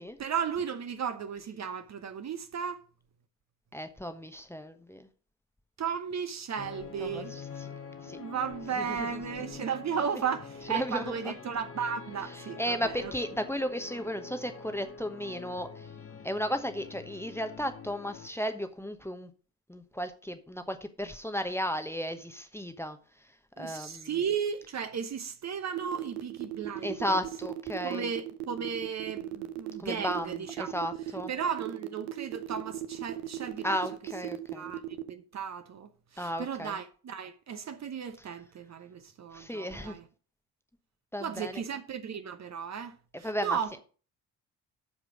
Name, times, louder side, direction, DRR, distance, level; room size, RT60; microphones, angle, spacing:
voice 1, 0.2-2.8 5.8-7.4 8.1-13.1 23.6-27.2 27.8-30.7 31.3-33.8 34.5-34.8 35.1-40.1 41.2-43.8, right 7 dB, 35° right, 0.9 m, -35 dB
voice 2, 3.7-5.1 7.0-7.2 8.0-8.2 8.8-9.0 10.7-11.1 12.6-15.9 16.2-19.3 19.7-23.0 23.6-24.1 26.8-28.1 29.8-31.3 33.6-34.7 36.2-36.7 39.3-40.0 41.1-41.6 43.2-43.6, equal, 5° left, 1.0 m, -34 dB
sound 1, 6.6-18.3, left 5 dB, 25° left, 1.4 m, -45 dB
sound 2, 25.8-35.1, right 15 dB, 70° right, 0.9 m, -37 dB
12.5 x 4.9 x 5.0 m
figure-of-eight pair, 45°, 48 cm